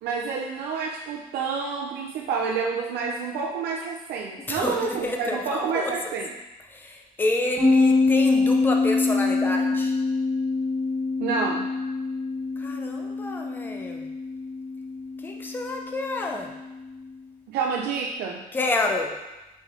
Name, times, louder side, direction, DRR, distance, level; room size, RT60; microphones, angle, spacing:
voice 1, 0.0-6.3 11.2-11.7 17.5-18.4, right 5 dB, 85° right, -1 dB, 0.6 m, -28 dB
voice 2, 4.5-5.9 6.7-9.9 12.6-14.0 15.2-16.5 18.5-19.1, left 2 dB, 10° left, 2 dB, 0.6 m, -29 dB
sound 1, 7.6-17.0, left 3 dB, 5° right, 1.5 m, -25 dB
5.3 x 4.9 x 3.8 m, 1.0 s
cardioid pair, 160°, 16 cm